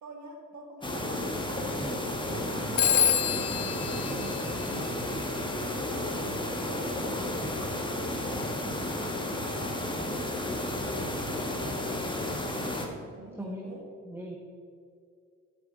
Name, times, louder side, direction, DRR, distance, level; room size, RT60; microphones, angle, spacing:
voice 1, 0.0-4.4 4.7-7.4 7.9-10.3 11.3-12.1 12.4-13.8, right 3 dB, 65° right, 2 dB, 1.6 m, -46 dB
sound 1, 0.8-12.9, left 1 dB, 15° left, 1.4 m, -32 dB
voice 2, 1.6-2.0 4.0-4.4 11.5-11.9 13.3-13.8 14.0-14.4, equal, 10° right, 0 dB, 1.0 m, -40 dB
Telephone, 2.8-5.3, left 10 dB, 55° left, 0.6 m, -28 dB
11.5 x 7.1 x 4.0 m, 2.4 s
cardioid pair, 90°, 30 cm